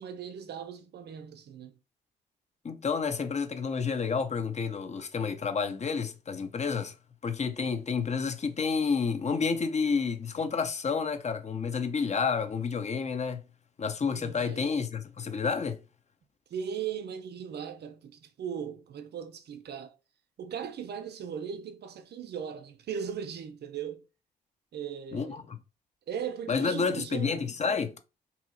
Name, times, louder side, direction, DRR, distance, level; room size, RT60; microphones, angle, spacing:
voice 1, 0.0-1.7 14.1-14.6 16.5-20.0 20.4-24.0 24.7-25.4 26.1-27.5, right 8 dB, 55° right, 0.6 m, -38 dB
voice 2, 2.6-6.9 7.2-13.4 13.8-15.8 25.1-25.6 26.5-27.9, left 5 dB, 35° left, 0.6 m, -30 dB
2.8 x 2.7 x 2.6 m
hypercardioid pair, 50°, 21 cm